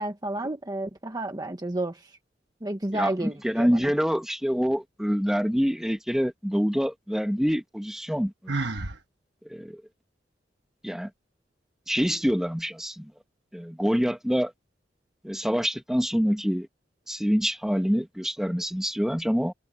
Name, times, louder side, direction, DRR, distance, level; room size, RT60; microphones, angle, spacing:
voice 1, 0.0-2.0 2.6-3.9, right 1 dB, 20° right, 1.3 m, -31 dB
voice 2, 2.9-8.6 9.4-9.8 10.8-11.1 11.9-13.1 13.5-14.5 15.2-16.7 17.1-19.5, equal, 5° right, 1.6 m, -26 dB
Sigh, 8.5-9.0, right 3 dB, 70° right, 1.5 m, -29 dB
head